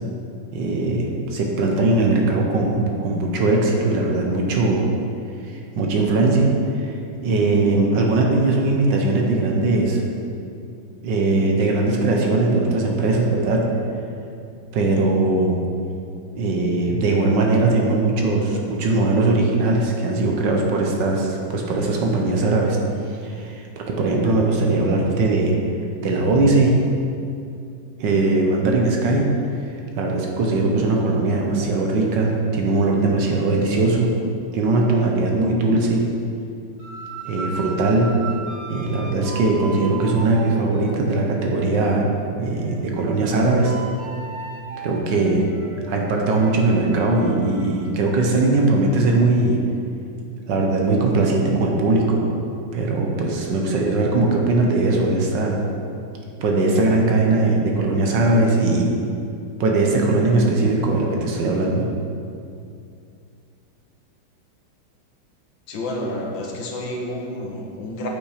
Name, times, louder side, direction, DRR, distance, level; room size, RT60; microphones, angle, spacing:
voice 1, 0.5-4.9 5.7-6.9 7.2-10.0 11.0-13.6 14.7-15.6 16.3-22.8 23.0-25.6 26.0-26.7 28.0-29.3 30.0-34.1 34.5-36.0 37.2-38.1 38.7-42.1 42.4-43.8 44.8-45.5 45.9-49.6 50.5-52.2 52.7-55.6 56.4-58.9 59.6-61.9, right 2 dB, 65° right, 0 dB, 1.5 m, -20 dB
sound 1, 36.8-42.0 42.5-47.8, right 4 dB, 85° right, 2.7 m, -37 dB
voice 2, 65.7-68.1, left 1 dB, 75° left, 0 dB, 1.8 m, -29 dB
8.6 x 5.7 x 4.9 m, 2.5 s
omnidirectional pair, 2.2 m